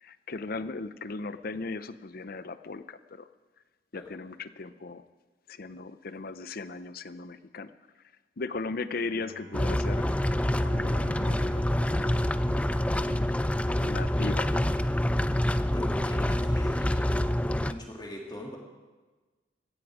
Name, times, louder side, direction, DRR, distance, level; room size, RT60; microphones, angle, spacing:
voice 1, 0.0-3.3 3.9-5.0 5.5-7.7 8.4-10.1 10.6-12.2 13.1-13.3 13.6-14.7, left 3 dB, 55° left, 13 dB, 0.7 m, -37 dB
Bowed string instrument, 8.9-14.2, right 1 dB, 65° right, 1.7 m, -51 dB
sound 1, 9.5-17.7, left 1 dB, 5° left, 0.4 m, -26 dB
voice 2, 15.4-17.1 17.5-18.6, left 1 dB, 25° left, 0 dB, 2.8 m, -42 dB
16.0 x 15.0 x 5.0 m, 1.3 s
head